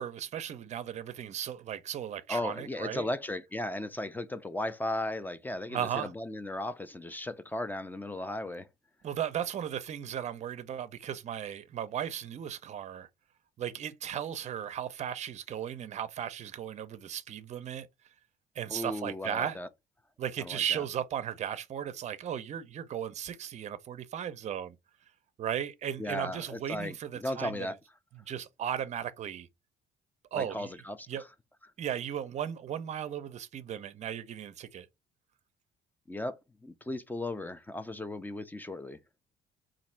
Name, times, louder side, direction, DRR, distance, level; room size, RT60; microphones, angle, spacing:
voice 1, 0.0-3.1 5.7-6.1 9.0-13.1 13.6-17.9 18.6-19.6 20.2-24.8 25.4-27.7 28.3-29.5 30.3-30.7 31.1-31.2 31.8-34.9, right 9 dB, 45° right, 0.5 m, -36 dB
voice 2, 2.3-8.7 18.7-19.7 20.4-20.8 26.0-27.8 30.3-31.1 36.1-39.0, left 1 dB, 10° left, 0.4 m, -36 dB
3.1 x 2.5 x 4.3 m
cardioid pair, 110°, 17 cm